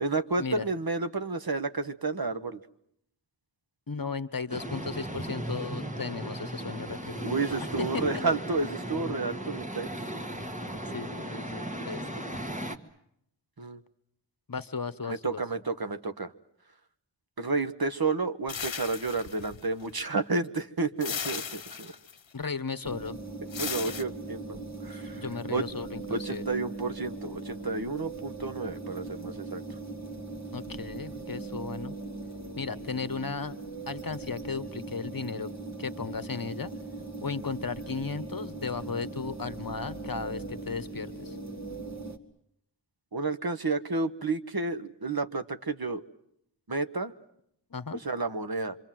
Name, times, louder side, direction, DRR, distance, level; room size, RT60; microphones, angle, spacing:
voice 1, 0.0-2.6 7.2-9.9 13.6-13.8 15.1-16.3 17.4-21.9 23.6-25.2 25.5-25.6 26.1-29.6 43.1-46.0 46.7-47.1 48.0-48.8, right 3 dB, 50° right, 9 dB, 1.4 m, -31 dB
voice 2, 3.9-8.0 10.9-12.2 14.5-15.4 22.3-23.2 24.9-26.4 30.5-32.0 32.6-33.6 33.9-35.5 35.8-36.7 37.2-41.4 47.7-48.0, left 5 dB, 50° left, 13 dB, 1.2 m, -35 dB
sound 1, 4.5-12.8, right 1 dB, 15° right, 1.9 m, -36 dB
sound 2, 18.5-19.9 21.0-22.2 23.5-24.0, left 7 dB, 75° left, 1.0 m, -36 dB
sound 3, 22.8-42.2, right 3 dB, 35° right, 2.4 m, -40 dB
26.5 x 25.5 x 7.6 m, 0.74 s
wide cardioid pair, 55°, 45 cm